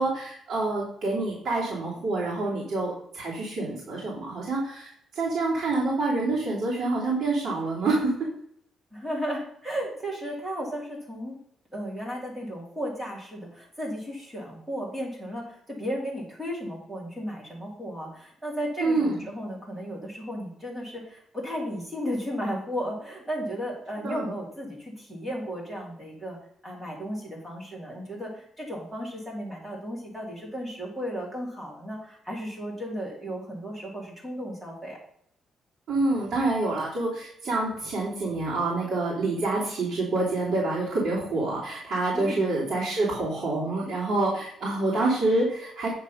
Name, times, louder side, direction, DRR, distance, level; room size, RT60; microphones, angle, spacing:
voice 1, 0.0-8.1 18.8-19.2 24.0-24.2 35.9-45.9, right 2 dB, 45° right, -7 dB, 3.0 m, -27 dB
voice 2, 8.9-11.4 11.7-26.4 26.6-35.0 42.1-42.4, equal, 5° right, -3 dB, 2.7 m, -34 dB
9.1 x 5.2 x 5.7 m, 0.68 s
cardioid pair, 175°, 0 cm